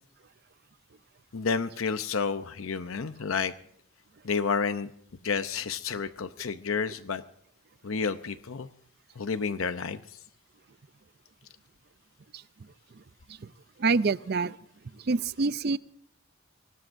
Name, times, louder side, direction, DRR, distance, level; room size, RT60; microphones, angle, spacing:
voice 1, 1.3-3.5 4.2-4.9 5.2-7.2 7.8-8.7 9.2-10.2, left 5 dB, 75° left, 0.7 m, -30 dB
voice 2, 13.8-14.5 15.1-15.8, right 4 dB, 50° right, 0.5 m, -25 dB
23.5 x 19.0 x 2.6 m
head